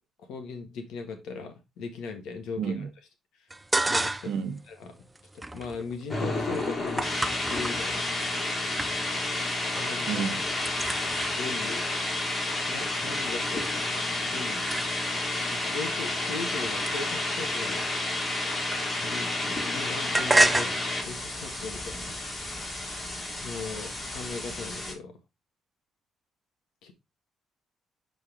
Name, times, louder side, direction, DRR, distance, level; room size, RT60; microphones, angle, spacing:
voice 1, 0.2-2.9 3.9-4.3 4.7-5.1 5.5-7.1 7.5-8.2 9.8-10.3 10.9-11.0 11.3-11.8 12.7-14.7 15.5-17.9 18.1-18.3 19.0-22.1 23.4-25.1 26.8-26.9, left 4 dB, 85° left, 1.5 m, -38 dB
voice 2, 2.6-2.9 4.3-4.6 10.1-10.5, right 7 dB, 85° right, 0.9 m, -30 dB
sound 1, 3.5-4.5 4.8-8.3 8.8-9.3 9.6-10.0 10.3-15.3 16.0-19.2 19.5-22.7, right 2 dB, 15° right, 0.5 m, -32 dB
sound 2, 6.1-24.9, left 2 dB, 30° left, 2.5 m, -31 dB
6.6 x 4.0 x 3.8 m
cardioid pair, 90°, 0 cm